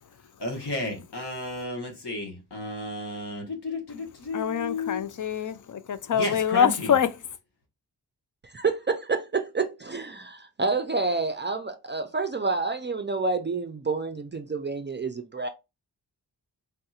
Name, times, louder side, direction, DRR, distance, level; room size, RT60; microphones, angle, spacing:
voice 1, 0.4-5.0 6.1-6.9, left 2 dB, 70° left, 1.1 m, -33 dB
voice 2, 4.3-7.1, left 8 dB, 50° left, 0.5 m, -25 dB
voice 3, 8.4-15.5, right 4 dB, 30° right, 0.4 m, -28 dB
3.5 x 2.8 x 2.3 m
cardioid pair, 45°, 42 cm